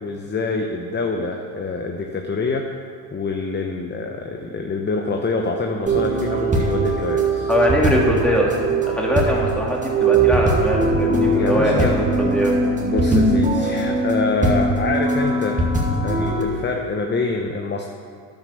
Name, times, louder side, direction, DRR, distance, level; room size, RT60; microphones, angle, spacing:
voice 1, 0.0-2.7 3.1-7.5 11.3-12.4 12.8-15.7 16.0-17.9, left 3 dB, 20° left, 3 dB, 0.9 m, -26 dB
sound 1, 5.9-16.4, right 2 dB, 15° right, 2.1 m, -20 dB
voice 2, 7.5-8.5 8.9-12.0 12.3-12.6, equal, ahead, -3 dB, 2.8 m, -21 dB
10.0 x 8.3 x 6.8 m, 2.3 s
supercardioid pair, 95°, 49 cm